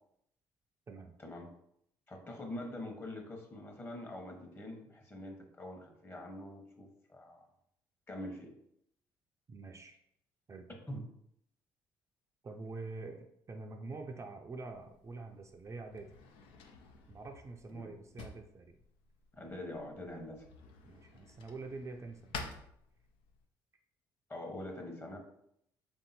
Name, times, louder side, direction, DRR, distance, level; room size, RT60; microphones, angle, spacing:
voice 1, 2.1-7.4 8.1-8.5 10.9-11.0 17.7-17.9 19.3-20.4 24.3-25.2, left 1 dB, 25° left, 2 dB, 1.1 m, -44 dB
voice 2, 9.5-10.0 10.5-10.6 12.4-16.1 17.1-18.8 20.8-22.3, right 3 dB, 35° right, 3 dB, 0.5 m, -46 dB
Drawer open or close, 14.7-23.5, left 4 dB, 80° left, 0.5 m, -51 dB
3.5 x 2.8 x 4.1 m, 0.73 s
supercardioid pair, 75°, 9 cm